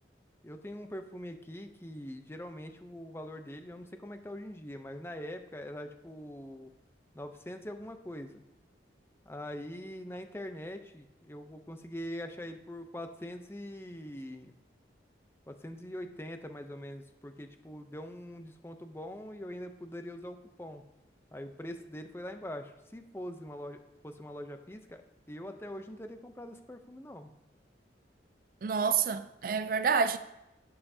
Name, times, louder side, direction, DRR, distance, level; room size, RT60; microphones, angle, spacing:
voice 1, 0.4-6.7 7.1-8.4 9.3-14.5 15.5-20.8 21.3-25.0 25.3-27.3, equal, 15° left, 0.6 m, -43 dB
voice 2, 28.6-30.2, right 6 dB, 50° right, 0.3 m, -28 dB
15.5 x 5.6 x 2.7 m
head